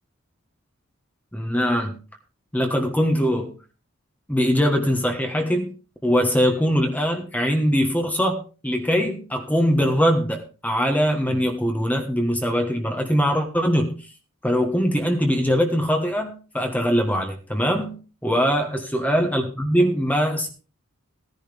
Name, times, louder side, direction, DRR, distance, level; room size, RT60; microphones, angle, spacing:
voice 1, 1.3-2.0 2.5-3.5 4.3-5.7 6.0-14.1 14.4-18.0 18.2-20.5, equal, 5° left, 3 dB, 1.3 m, -22 dB
15.5 x 10.5 x 3.5 m, 0.34 s
head